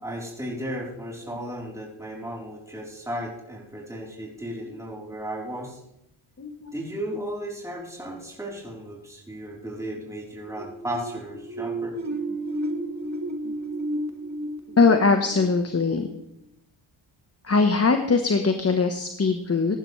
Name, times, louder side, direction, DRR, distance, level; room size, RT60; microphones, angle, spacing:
voice 1, 0.0-5.8 6.7-11.9, equal, 5° right, -3 dB, 3.9 m, -35 dB
voice 2, 6.4-6.7 13.4-13.5 14.8-16.1 17.4-19.8, left 4 dB, 30° left, 6 dB, 1.2 m, -21 dB
sound 1, 10.3-16.0, right 1 dB, 35° right, 1.7 m, -32 dB
16.0 x 11.0 x 3.3 m, 0.85 s
cardioid pair, 55°, 50 cm